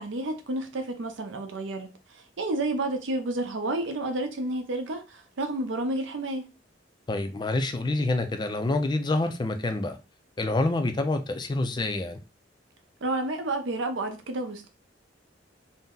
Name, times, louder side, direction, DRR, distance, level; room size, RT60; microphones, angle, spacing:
voice 1, 0.0-6.5 13.0-14.7, right 2 dB, 85° right, 0.6 m, -30 dB
voice 2, 7.1-10.0 10.4-12.2, left 2 dB, 25° left, 0.4 m, -27 dB
2.6 x 2.1 x 3.6 m
head